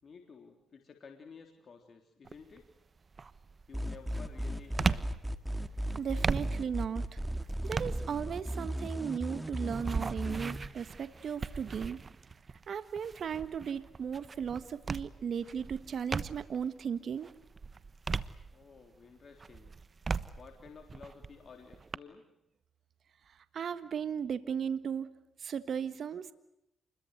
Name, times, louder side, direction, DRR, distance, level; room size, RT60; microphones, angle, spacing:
voice 1, 0.0-2.7 3.7-5.1 18.5-19.7 20.4-22.3, left 5 dB, 55° left, 4 dB, 3.6 m, -53 dB
sound 1, 2.2-2.6 3.1-16.7 17.1-18.9 19.4-22.0, right 4 dB, 40° right, 1.2 m, -38 dB
sound 2, 3.7-10.6, equal, 5° right, 2.2 m, -36 dB
voice 2, 6.0-7.2 7.6-12.0 12.7-17.3 23.3-25.1 25.4-26.3, right 7 dB, 60° right, 13 dB, 1.5 m, -36 dB
28.5 x 22.0 x 8.1 m, 0.85 s
supercardioid pair, 65°, 0 cm